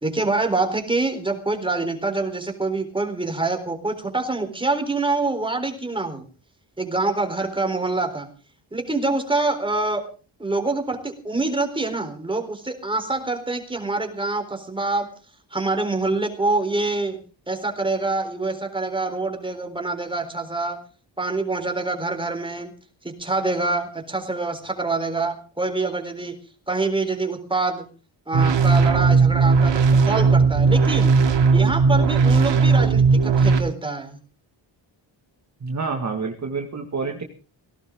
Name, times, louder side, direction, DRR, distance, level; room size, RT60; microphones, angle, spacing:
voice 1, 0.0-6.2 6.8-8.3 8.7-10.1 10.4-15.1 15.5-17.2 17.5-20.8 21.2-22.7 23.2-26.3 26.7-27.9 28.3-31.2 31.5-34.2, right 3 dB, 10° right, 4 dB, 4.1 m, -25 dB
sound 1, 28.3-33.6, right 4 dB, 70° right, 2.7 m, -17 dB
voice 2, 35.6-37.2, right 4 dB, 35° right, 3 dB, 2.1 m, -28 dB
18.0 x 17.5 x 3.8 m, 0.37 s
wide cardioid pair, 170°, 46 cm